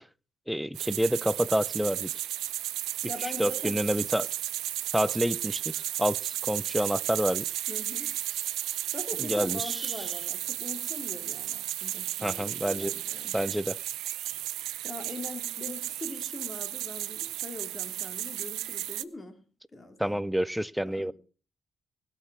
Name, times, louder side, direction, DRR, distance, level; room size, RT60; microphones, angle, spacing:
voice 1, 0.5-2.1 3.2-4.3 4.9-5.7 6.0-7.4 9.2-10.1 12.2-12.9 13.3-13.8 20.0-21.1, equal, ahead, 0.5 m, -28 dB
sound 1, 0.8-19.0, right 14 dB, 90° right, 0.5 m, -34 dB
voice 2, 2.9-3.8 7.7-8.1 8.9-13.7 14.8-19.4 19.7-20.2 20.9-21.1, left 2 dB, 25° left, 2.6 m, -42 dB
20.0 x 6.7 x 5.9 m
cardioid pair, 90°, 0 cm